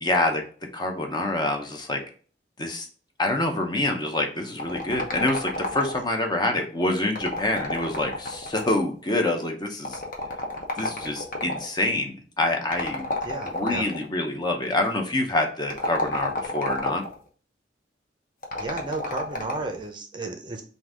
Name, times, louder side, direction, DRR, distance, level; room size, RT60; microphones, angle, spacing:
voice 1, 0.0-0.4 0.7-2.0 2.6-2.9 3.2-10.0 10.8-13.1 13.4-17.0, left 2 dB, 25° left, 3 dB, 0.7 m, -26 dB
sound 1, 4.6-6.2 7.0-8.9 9.8-11.7 12.7-14.0 15.6-17.2 18.4-19.8, left 1 dB, 50° left, 0.9 m, -31 dB
voice 2, 13.2-13.9 18.6-20.6, right 3 dB, 25° right, 4 dB, 0.6 m, -33 dB
3.8 x 2.6 x 4.7 m, 0.41 s
head